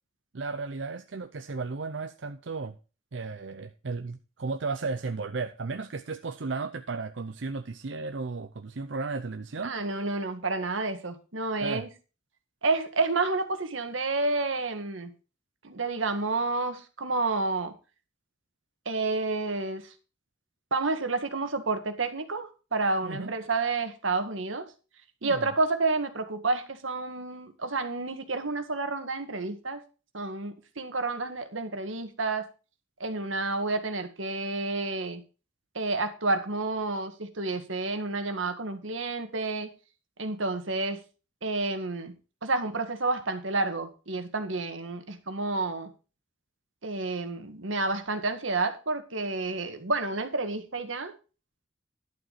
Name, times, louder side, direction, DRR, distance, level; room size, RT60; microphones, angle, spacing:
voice 1, 0.3-2.7 3.1-9.8 11.6-11.9 23.0-23.3 25.2-25.5, right 4 dB, 65° right, 0.6 m, -34 dB
voice 2, 9.6-11.9 12.6-15.1 15.6-17.7 18.9-19.9 20.7-24.7 25.2-29.8 30.1-32.5 33.0-35.2 35.8-39.7 40.2-41.0 41.4-42.1 42.4-45.9 46.8-51.1, right 3 dB, 85° right, 1.8 m, -30 dB
11.5 x 7.9 x 4.2 m
head